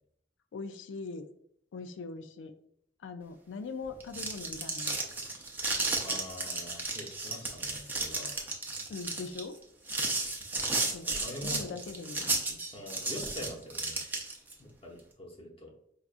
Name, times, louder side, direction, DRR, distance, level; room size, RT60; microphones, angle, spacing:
voice 1, 0.5-1.3 1.7-2.5 3.0-5.0 8.9-9.6 10.9-11.1 11.4-12.6, left 4 dB, 90° left, 9 dB, 0.3 m, -41 dB
sound 1, 3.9-14.5, right 3 dB, 10° right, 0.5 m, -33 dB
voice 2, 6.0-8.3 10.0-10.4 11.1-11.8 12.7-14.0 14.6-15.7, left 1 dB, 30° left, 1 dB, 0.7 m, -44 dB
4.7 x 2.4 x 2.4 m, 0.70 s
head